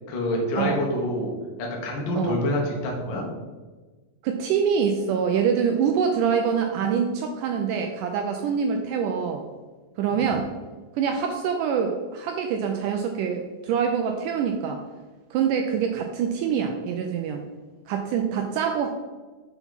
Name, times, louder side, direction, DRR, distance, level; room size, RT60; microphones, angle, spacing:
voice 1, 0.1-3.2 10.1-10.2, left 1 dB, 80° left, -1 dB, 1.0 m, -27 dB
voice 2, 4.2-9.5 10.0-10.5 11.0-14.8 15.3-17.4 17.9-18.9, right 7 dB, 85° right, 4 dB, 1.8 m, -25 dB
6.0 x 5.7 x 4.1 m, 1.3 s
omnidirectional pair, 4.2 m